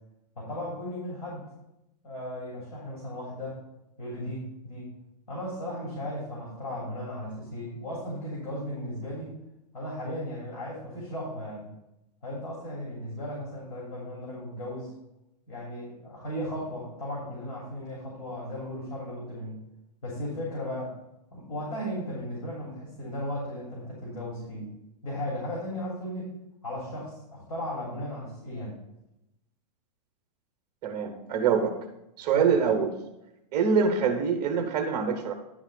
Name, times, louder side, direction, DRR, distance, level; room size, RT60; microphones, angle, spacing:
voice 1, 0.4-1.4 2.0-3.6 4.0-4.9 5.3-9.3 9.7-11.7 12.2-14.9 15.5-19.6 20.0-20.9 21.3-24.7 25.0-26.3 26.6-28.7 32.3-32.5, left 1 dB, 65° left, -4 dB, 3.6 m, -36 dB
voice 2, 30.8-31.7 32.2-32.9 33.5-35.3, right 6 dB, 25° right, 5 dB, 0.9 m, -24 dB
10.5 x 3.9 x 7.0 m, 0.87 s
supercardioid pair, 165°, 21 cm